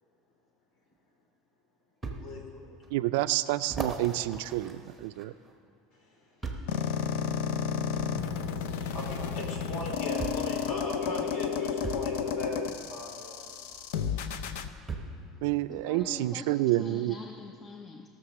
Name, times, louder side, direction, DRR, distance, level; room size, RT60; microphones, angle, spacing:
sound 1, 0.9-1.0 2.0-2.2 2.8-2.9 3.6-5.5 6.4-6.8 7.9-8.1 9.4-9.5 10.2-10.5 11.8-12.1 13.7-13.8 14.9-15.2 16.0-16.1, right 4 dB, 5° right, 0.9 m, -38 dB
voice 1, 2.1-2.7 6.7-6.8 8.9-12.6 12.9-13.7, left 1 dB, 50° left, 0 dB, 2.6 m, -38 dB
voice 2, 2.9-5.3 15.4-17.2, right 16 dB, 75° right, 14 dB, 0.3 m, -29 dB
sound 2, 6.7-14.7, left 7 dB, 85° left, 0.6 m, -32 dB
voice 3, 15.7-18.1, left 3 dB, 20° left, 5 dB, 0.4 m, -43 dB
17.5 x 6.6 x 6.1 m, 2.3 s
cardioid pair, 175°, 0 cm